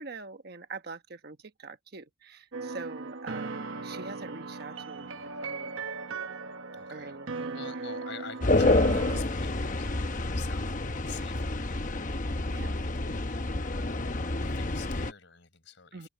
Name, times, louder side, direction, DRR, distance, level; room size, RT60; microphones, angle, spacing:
voice 1, 0.0-5.7 6.9-7.6 12.4-12.7 15.9-16.1, right 3 dB, 50° right, 1.1 m, -44 dB
sound 1, 2.5-9.2, right 4 dB, 70° right, 1.0 m, -38 dB
voice 2, 4.9-5.3 6.7-13.9 14.4-16.1, left 6 dB, 60° left, 4.9 m, -49 dB
sound 2, 8.4-15.1, left 2 dB, 40° left, 0.9 m, -28 dB
head